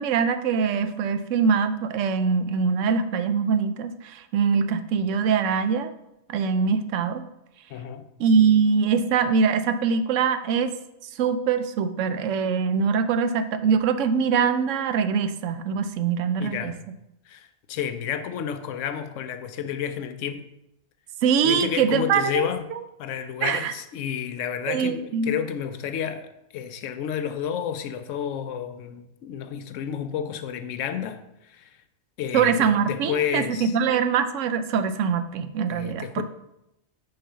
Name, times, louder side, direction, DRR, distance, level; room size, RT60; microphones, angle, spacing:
voice 1, 0.0-5.9 6.3-7.2 8.2-10.7 11.2-16.7 21.2-22.4 23.4-23.7 24.7-25.3 32.3-36.2, right 6 dB, 90° right, 0.9 m, -23 dB
voice 2, 7.7-8.1 16.4-16.8 17.3-20.5 21.4-22.7 23.0-31.7 32.2-33.8 35.7-36.2, left 8 dB, 90° left, 0.9 m, -31 dB
5.5 x 4.2 x 5.5 m
omnidirectional pair, 1.2 m